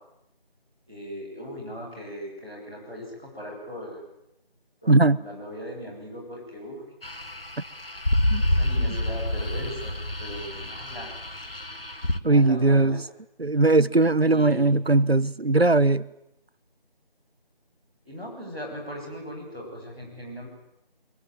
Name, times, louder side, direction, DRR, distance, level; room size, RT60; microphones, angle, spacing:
voice 1, 0.9-4.1 4.8-6.8 8.4-11.1 12.2-13.0 14.3-14.9 18.0-20.5, equal, 5° left, 6.7 m, -39 dB
voice 2, 4.9-5.2 8.3-8.4 8.9-9.0 12.2-13.0 13.4-16.0, right 2 dB, 90° right, 1.1 m, -19 dB
sound 1, 7.0-12.2, left 1 dB, 70° left, 2.1 m, -28 dB
26.0 x 22.5 x 9.7 m
figure-of-eight pair, 180°, 30 cm